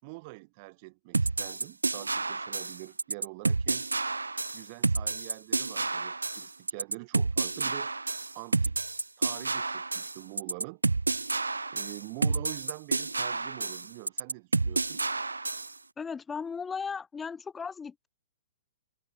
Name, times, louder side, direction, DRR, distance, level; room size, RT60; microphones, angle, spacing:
voice 1, 0.0-3.9 4.5-8.0 8.3-8.9 9.2-10.8 11.7-15.0, right 27 dB, 40° right, 6.6 m, -45 dB
sound 1, 1.1-15.7, right 3 dB, 75° right, 0.8 m, -30 dB
voice 2, 16.0-18.1, left 5 dB, 10° left, 2.9 m, -36 dB
figure-of-eight pair, 110°, 0 cm